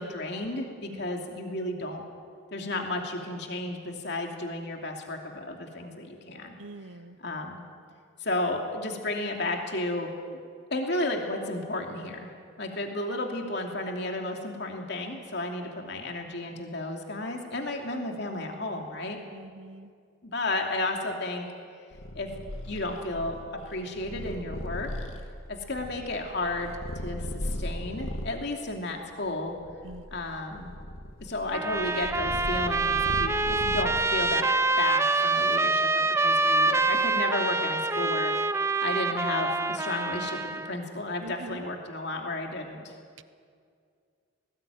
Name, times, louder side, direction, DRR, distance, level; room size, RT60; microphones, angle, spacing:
voice 1, 0.0-2.0 2.5-6.6 7.2-7.7 8.2-10.4 10.7-12.3 12.6-19.2 20.2-21.5 22.1-22.3 22.7-23.4 23.6-24.9 25.5-29.6 30.1-30.7 31.2-34.5 34.8-38.3 38.8-42.9, left 2 dB, 55° left, 2 dB, 2.8 m, -33 dB
voice 2, 6.6-7.2 19.3-19.9 29.8-30.0 41.2-41.6, right 2 dB, 70° right, 13 dB, 0.9 m, -43 dB
Purr, 21.9-28.4 29.1-34.3, left 1 dB, 80° left, 1.9 m, -37 dB
Trumpet, 31.5-40.7, right 3 dB, 15° right, 0.6 m, -26 dB
19.0 x 19.0 x 9.3 m, 2.2 s
head